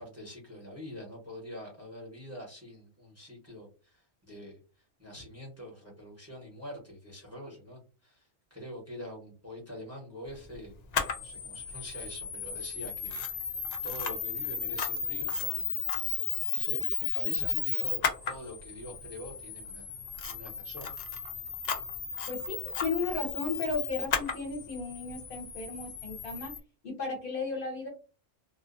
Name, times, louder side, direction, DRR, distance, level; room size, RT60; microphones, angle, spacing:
voice 1, 0.0-4.6 5.0-10.7 11.2-15.8 16.5-18.0 18.2-20.0 20.3-20.9, left 1 dB, 15° right, -2 dB, 0.8 m, -45 dB
Camera, 10.9-26.6, left 6 dB, 75° left, 0.4 m, -34 dB
voice 2, 22.3-26.5 26.8-27.9, left 4 dB, 55° left, 1 dB, 0.8 m, -35 dB
2.5 x 2.2 x 2.5 m, 0.34 s
omnidirectional pair, 1.3 m